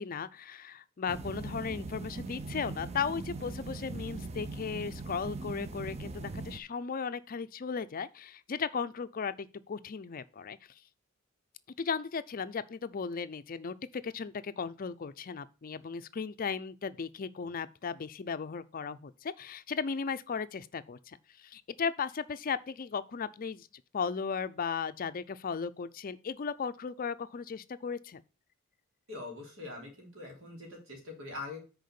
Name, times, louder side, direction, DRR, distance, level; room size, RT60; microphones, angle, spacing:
voice 1, 0.0-10.6 11.8-23.7 23.9-28.2, left 6 dB, 45° left, 0.4 m, -36 dB
sound 1, 1.1-6.6, right 3 dB, 30° right, 0.6 m, -40 dB
voice 2, 29.1-31.6, left 3 dB, 80° right, 3.3 m, -43 dB
6.5 x 4.7 x 6.8 m
head